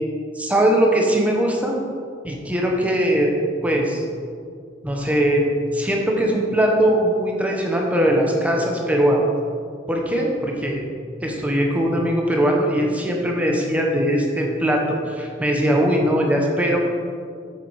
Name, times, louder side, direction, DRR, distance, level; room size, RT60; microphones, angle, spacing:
voice 1, 0.4-1.8 2.2-3.3 3.6-4.0 4.8-5.5 5.7-9.2 9.9-10.8 11.2-16.9, equal, 10° right, 0 dB, 1.0 m, -20 dB
7.7 x 7.0 x 4.8 m, 2.2 s
head